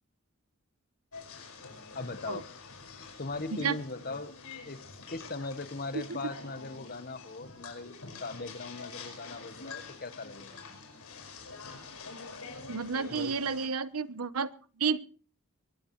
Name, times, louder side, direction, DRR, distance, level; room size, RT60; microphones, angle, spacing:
sound 1, 1.1-13.7, left 4 dB, 85° left, 5.3 m, -46 dB
voice 1, 1.9-2.4 3.2-4.3 4.6-4.8 5.1-10.8 13.1-13.4, left 3 dB, 40° left, 12 dB, 1.1 m, -39 dB
voice 2, 12.7-14.5 14.8-15.0, right 5 dB, 85° right, 15 dB, 0.9 m, -31 dB
23.0 x 16.5 x 3.2 m, 0.41 s
head